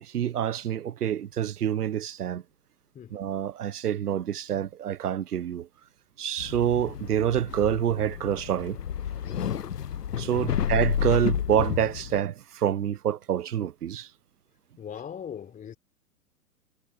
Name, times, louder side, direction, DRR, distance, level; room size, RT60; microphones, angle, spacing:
voice 1, 0.0-2.4 3.1-5.7 6.2-8.8 10.2-14.1, right 10 dB, 70° right, 0.9 m, -27 dB
sound 1, 6.4-12.2, left 9 dB, 80° left, 0.9 m, -30 dB
voice 2, 14.8-15.8, left 8 dB, 15° left, 3.8 m, -40 dB
figure-of-eight pair, 115°, 48 cm